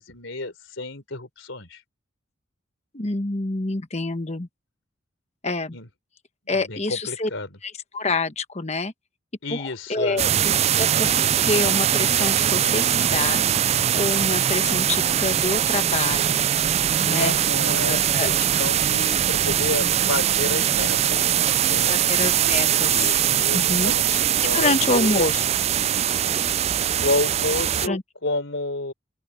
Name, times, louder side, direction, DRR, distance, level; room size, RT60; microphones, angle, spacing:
voice 1, 0.0-1.8 5.7-5.9 6.5-7.6 9.4-10.3 17.0-22.0 22.8-25.3 27.0-28.9, left 2 dB, 70° left, 4.1 m, -30 dB
voice 2, 2.9-4.5 5.4-5.8 6.5-7.3 7.6-8.9 9.5-16.3 17.0-17.3 17.9-18.3 21.9-23.1 23.5-24.2 24.5-25.4 27.8-28.0, left 3 dB, 35° left, 1.2 m, -27 dB
sound 1, 10.2-27.9, right 10 dB, 30° right, 0.3 m, -21 dB
open air
head